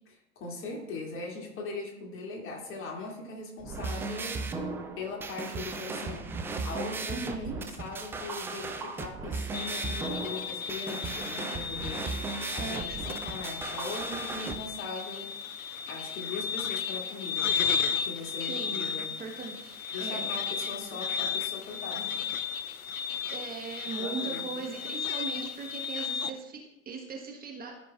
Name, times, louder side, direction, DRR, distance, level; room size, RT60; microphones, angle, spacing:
voice 1, 0.4-4.5 5.0-6.3 6.6-12.1 12.5-15.3 15.9-17.5 17.9-19.1 19.9-22.1 23.9-24.7, left 3 dB, 30° left, -2 dB, 2.2 m, -40 dB
sound 1, 3.6-14.5, right 3 dB, 5° right, 0.3 m, -36 dB
voice 2, 7.1-7.6 12.6-13.3 18.4-18.8 19.2-20.3 20.9-21.0 23.3-27.8, right 4 dB, 20° right, 1 dB, 1.1 m, -39 dB
sound 2, 9.5-26.3, left 7 dB, 90° left, 0.5 m, -34 dB
14.5 x 5.1 x 2.3 m, 0.92 s
figure-of-eight pair, 85°, 40 cm